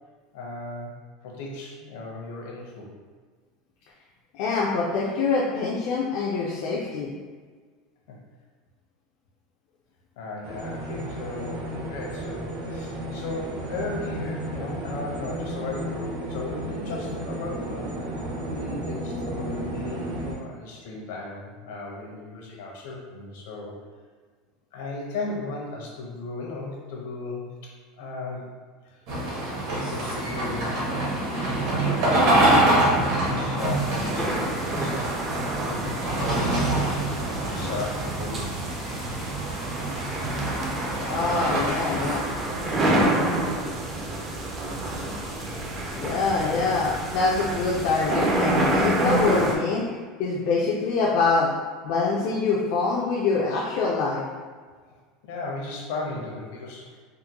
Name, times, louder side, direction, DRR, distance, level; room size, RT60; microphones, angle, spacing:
voice 1, 0.3-0.9 1.2-2.9 8.1-8.2 10.2-18.0 18.5-23.7 24.7-27.7 28.0-28.5 28.8-29.0 29.6-31.0 31.6-35.0 35.6-38.5 44.7-44.8 46.3-46.7 54.9-57.0, left 2 dB, 75° left, -1 dB, 0.8 m, -36 dB
voice 2, 4.3-7.1 41.1-42.3 45.9-49.9 50.2-51.5 51.8-54.2, left 4 dB, 55° left, -4 dB, 0.4 m, -25 dB
sound 1, 10.4-20.3, right 1 dB, 75° right, 0.7 m, -33 dB
sound 2, 29.1-42.2, right 1 dB, 55° right, 1.0 m, -26 dB
sound 3, 33.6-49.6, right 1 dB, 20° right, 0.4 m, -28 dB
3.6 x 2.1 x 2.9 m, 1.5 s
supercardioid pair, 165°, 0 cm